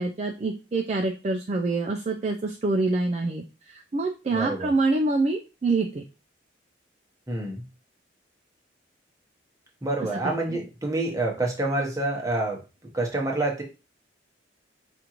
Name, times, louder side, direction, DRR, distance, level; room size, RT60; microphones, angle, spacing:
voice 1, 0.0-6.0 10.1-10.6, right 3 dB, 35° right, 2 dB, 0.3 m, -26 dB
voice 2, 4.3-4.7 7.3-7.6 9.8-12.6 12.9-13.6, right 2 dB, 15° right, -1 dB, 0.9 m, -27 dB
5.1 x 2.5 x 2.9 m, 0.30 s
head